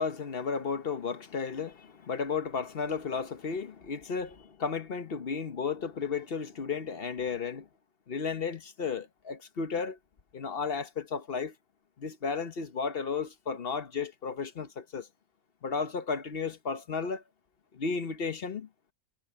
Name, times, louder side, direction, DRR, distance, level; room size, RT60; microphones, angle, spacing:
voice 1, 0.0-7.7 8.1-10.0 10.3-11.5 12.0-15.1 15.6-17.2 17.7-18.7, left 5 dB, 45° left, 1.1 m, -33 dB
omnidirectional pair, 1.6 m